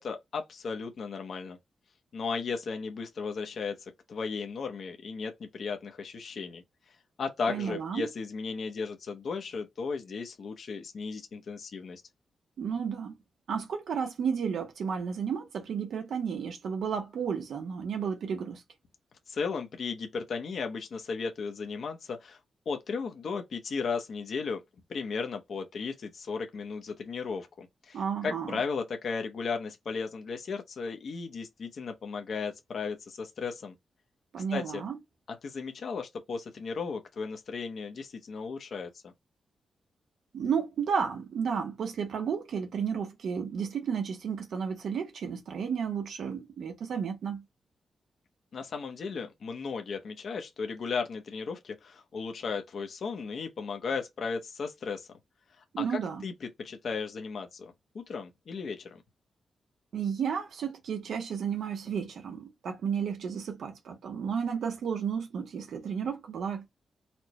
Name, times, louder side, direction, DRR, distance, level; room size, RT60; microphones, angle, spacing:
voice 1, 0.0-1.6 2.1-6.6 7.2-12.0 19.3-22.4 22.7-24.6 24.9-33.7 34.5-34.8 35.4-39.1 48.5-55.1 55.8-59.0, left 5 dB, 60° left, 0.7 m, -35 dB
voice 2, 7.5-8.1 12.6-13.2 13.5-18.6 27.9-28.6 34.3-35.0 40.3-47.4 55.7-56.2 59.9-66.7, right 7 dB, 85° right, 0.8 m, -32 dB
4.3 x 2.1 x 2.9 m
wide cardioid pair, 130°, 0 cm